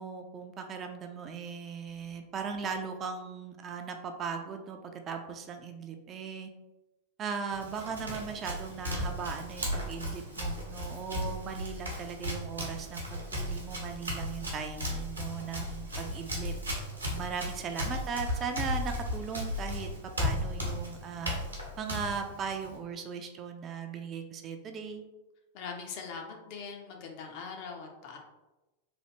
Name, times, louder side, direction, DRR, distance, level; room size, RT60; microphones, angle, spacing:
voice 1, 0.0-4.8 5.1-6.5 7.2-16.5 17.1-21.4 21.8-25.0, right 6 dB, 30° right, 5 dB, 0.3 m, -38 dB
Run, 7.5-22.8, left 1 dB, 80° right, 0.8 m, -36 dB
voice 2, 25.5-28.2, left 5 dB, 45° left, 2 dB, 0.6 m, -42 dB
3.2 x 2.3 x 2.8 m, 1.0 s
figure-of-eight pair, 90°, 0 cm